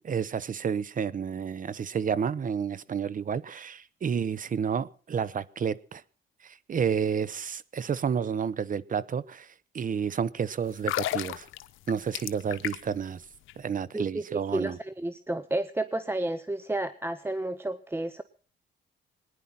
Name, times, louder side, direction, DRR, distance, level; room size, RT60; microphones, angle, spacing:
voice 1, 0.0-6.0 6.4-11.5 11.9-13.2 13.6-14.8, right 7 dB, 40° right, 20 dB, 0.8 m, -30 dB
sound 1, 10.7-13.0 13.3-13.5, left 14 dB, 85° left, 0.8 m, -33 dB
voice 2, 13.9-18.2, right 1 dB, 10° right, 14 dB, 0.7 m, -31 dB
20.0 x 10.0 x 5.9 m, 0.42 s
cardioid pair, 90°, 20 cm